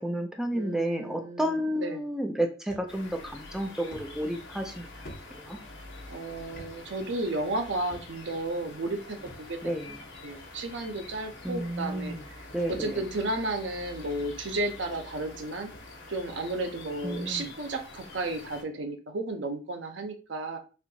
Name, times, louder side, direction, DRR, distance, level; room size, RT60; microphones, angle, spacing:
voice 1, 0.0-4.9 5.3-5.6 9.6-10.0 11.4-12.2 12.5-13.0 17.0-17.5, right 1 dB, 5° right, 4 dB, 0.4 m, -31 dB
voice 2, 0.5-2.0 6.1-9.8 10.2-15.7 16.1-20.6, right 2 dB, 75° right, 5 dB, 0.7 m, -33 dB
sound 1, 2.7-2.9 3.3-3.4 3.9-5.9 6.5-6.7 7.0-7.1 7.9-8.4 9.3-9.8 10.7-10.8 11.7-11.8 12.1-13.3 13.7-14.0 14.8-14.9 15.3-15.4 15.7-15.8 16.3-16.5, equal, 50° left, 1.1 m, -48 dB
sound 2, 2.9-18.6, left 2 dB, 80° left, 1.0 m, -46 dB
4.3 x 2.6 x 2.7 m, 0.34 s
head